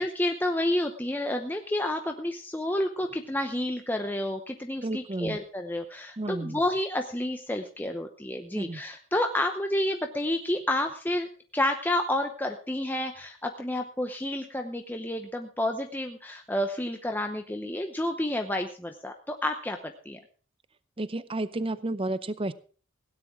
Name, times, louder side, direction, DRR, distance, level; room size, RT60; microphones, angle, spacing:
voice 1, 0.0-20.2, left 1 dB, 10° left, 4 dB, 0.8 m, -30 dB
voice 2, 4.8-5.4 6.2-6.6 8.5-8.8 21.0-22.5, right 2 dB, 25° right, 15 dB, 0.6 m, -31 dB
17.0 x 9.7 x 4.8 m, 0.41 s
head